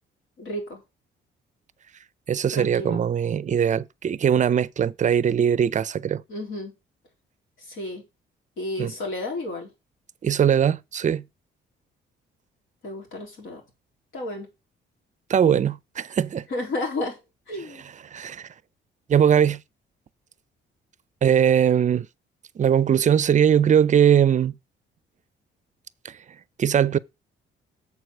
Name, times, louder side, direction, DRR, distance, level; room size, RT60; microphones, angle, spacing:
voice 1, 0.4-0.8 2.5-3.0 6.3-6.7 7.6-8.0 8.6-9.7 12.8-13.6 14.1-14.5 16.5-17.2 17.5-17.9, left 2 dB, 75° left, 3.7 m, -32 dB
voice 2, 2.3-6.2 8.8-8.9 10.2-11.2 15.3-16.4 18.1-18.5 19.1-19.6 21.2-22.1 22.6-24.5 26.6-27.0, right 8 dB, 40° right, 0.5 m, -20 dB
7.1 x 4.7 x 6.3 m
cardioid pair, 90°, 20 cm